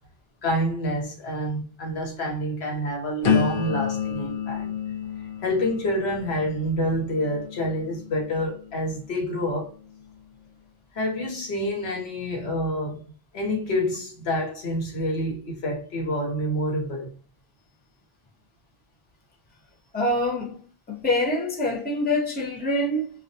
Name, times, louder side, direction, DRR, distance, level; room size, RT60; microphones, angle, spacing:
voice 1, 0.4-4.7 5.4-9.7 10.9-13.0 13.3-17.1, equal, 85° left, 1.1 m, -27 dB
sound 1, 3.2-9.1 9.6-10.0, left 7 dB, 70° left, 0.9 m, -30 dB
voice 2, 19.9-20.6 20.9-23.1, left 1 dB, 15° left, 0.3 m, -25 dB
2.3 x 2.2 x 2.6 m
omnidirectional pair, 1.0 m